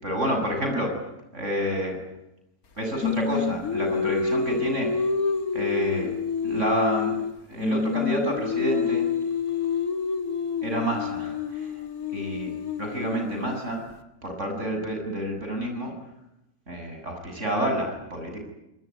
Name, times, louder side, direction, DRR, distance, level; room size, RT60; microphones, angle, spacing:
voice 1, 0.0-2.0 2.8-5.1 5.5-6.1 6.4-9.1 10.6-11.8 12.1-12.5 12.8-13.8 14.2-15.9 16.7-18.4, right 1 dB, 55° right, 4 dB, 7.9 m, -29 dB
Singing, 3.0-7.3 7.6-13.6, left 6 dB, 85° left, 2.3 m, -28 dB
26.5 x 20.5 x 9.6 m, 0.86 s
omnidirectional pair, 1.5 m